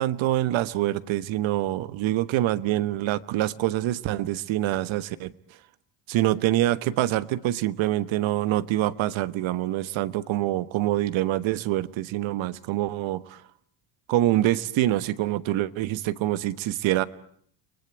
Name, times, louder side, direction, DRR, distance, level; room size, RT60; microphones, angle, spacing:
voice 1, 0.0-5.3 6.1-13.4 14.1-17.0, right 14 dB, 75° right, 15 dB, 1.3 m, -25 dB
30.0 x 20.0 x 9.2 m, 0.63 s
cardioid pair, 115°, 47 cm